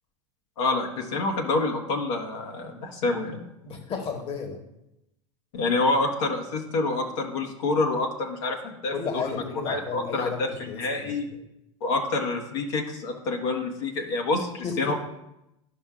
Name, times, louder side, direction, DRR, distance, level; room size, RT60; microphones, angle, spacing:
voice 1, 0.6-3.4 5.5-9.3 9.7-11.3 11.8-14.9, left 3 dB, 65° left, 1 dB, 1.4 m, -27 dB
voice 2, 3.6-4.6 8.9-11.2 14.6-14.9, left 5 dB, 35° left, 3 dB, 1.4 m, -33 dB
12.5 x 5.4 x 2.5 m, 0.86 s
hypercardioid pair, 90°, 17 cm